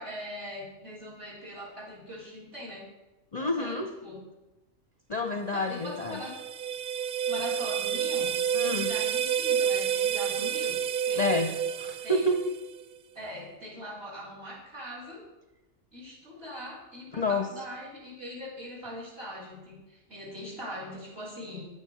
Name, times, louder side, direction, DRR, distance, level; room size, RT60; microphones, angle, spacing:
voice 1, 0.0-2.9 3.4-3.8 4.0-4.2 5.5-6.3 7.3-10.8 11.0-11.4 12.0-12.2 13.1-15.2 15.9-21.6, equal, 45° right, -3 dB, 4.4 m, -41 dB
voice 2, 3.3-3.9 5.1-6.2 8.5-8.9 11.2-12.4 17.1-17.5, left 2 dB, 40° left, 5 dB, 0.7 m, -29 dB
sound 1, 5.7-12.8, right 8 dB, 70° right, 0.4 m, -29 dB
9.1 x 9.0 x 6.4 m, 1.1 s
omnidirectional pair, 1.4 m